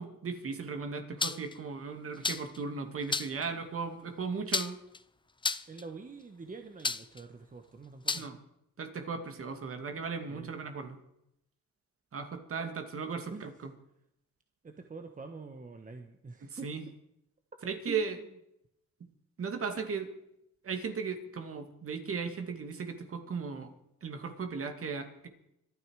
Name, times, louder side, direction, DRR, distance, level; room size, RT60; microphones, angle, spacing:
voice 1, 0.0-4.8 8.1-8.4 8.8-11.0 12.1-13.7 16.4-16.8 17.6-18.2 19.4-20.1 20.6-23.7 24.0-25.3, right 5 dB, 45° right, 6 dB, 2.4 m, -37 dB
sound 1, 1.2-1.5 2.2-2.6 3.1-3.4 4.5-5.0 5.4-5.8 6.8-7.2 8.1-8.3, left 4 dB, 15° left, 0.6 m, -31 dB
voice 2, 5.7-8.2 10.3-10.5 12.6-12.8 13.3-13.5 14.6-16.7 17.9-18.2, right 4 dB, 25° right, 6 dB, 1.3 m, -46 dB
25.5 x 9.5 x 4.9 m, 0.81 s
cardioid pair, 90°, 30 cm